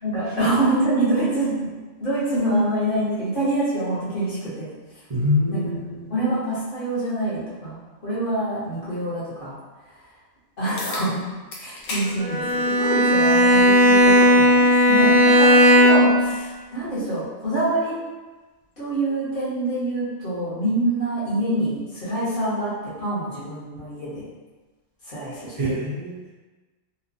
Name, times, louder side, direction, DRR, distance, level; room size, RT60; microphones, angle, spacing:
voice 1, 0.0-1.7 2.0-4.7 5.5-5.6 6.1-9.5 10.6-11.2 11.6-17.9 18.8-24.2 25.0-25.7, right 1 dB, 45° left, -10 dB, 1.2 m, -25 dB
voice 2, 5.1-6.1 25.5-26.3, left 2 dB, 40° right, -6 dB, 0.5 m, -25 dB
sound 1, 10.8-11.1 11.5-12.1 12.5-12.6 13.7-13.8 18.7-18.8, left 2 dB, 85° left, 1.0 m, -32 dB
Bowed string instrument, 12.2-16.3, left 1 dB, 75° right, 1.1 m, -15 dB
3.1 x 2.2 x 2.6 m, 1.2 s
omnidirectional pair, 1.3 m